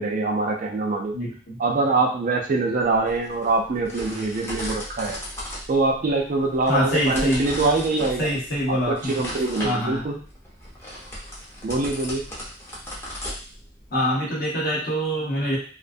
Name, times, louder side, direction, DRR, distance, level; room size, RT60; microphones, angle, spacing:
voice 1, 0.0-1.2 1.6-5.2 5.7-8.3 8.7-10.2 11.6-12.2, right 3 dB, 45° right, 1 dB, 0.4 m, -24 dB
voice 2, 1.1-1.6 6.7-7.4 8.2-9.2 9.6-10.0 13.9-15.6, equal, 50° left, -4 dB, 0.9 m, -24 dB
sound 1, 2.8-14.0, equal, 15° left, 0.6 m, -37 dB
2.4 x 2.2 x 2.5 m, 0.41 s
head